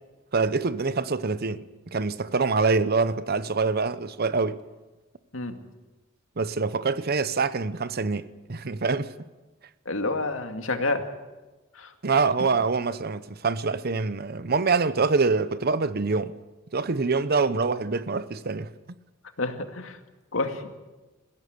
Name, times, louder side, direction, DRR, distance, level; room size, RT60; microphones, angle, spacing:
voice 1, 0.3-1.6 1.9-4.6 6.4-9.1 12.0-16.3 16.7-18.7, right 4 dB, 50° right, 0.9 m, -25 dB
voice 2, 9.9-11.0 11.7-11.9 19.4-20.0 20.3-20.7, left 2 dB, 80° left, 2.2 m, -29 dB
21.5 x 16.0 x 9.7 m
head